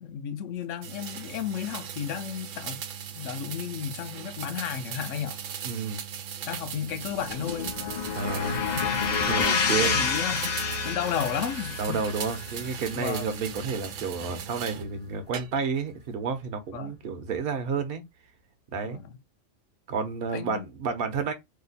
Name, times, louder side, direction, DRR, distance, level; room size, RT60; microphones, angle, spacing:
voice 1, 0.0-2.8 3.2-5.4 6.5-7.8 8.5-8.8 9.5-12.0 12.9-13.3 16.7-16.9 18.8-19.1 20.3-20.7, left 8 dB, 80° left, 0.9 m, -33 dB
sound 1, 0.8-14.9 15.3-15.9, right 8 dB, 80° right, 1.0 m, -39 dB
voice 2, 5.6-6.0 8.2-8.6 9.2-9.9 11.8-18.0 18.7-19.0 19.9-21.3, right 5 dB, 55° right, 0.9 m, -30 dB
sound 2, 6.7-15.0, left 5 dB, 55° left, 0.5 m, -30 dB
2.9 x 2.2 x 4.0 m
omnidirectional pair, 1.3 m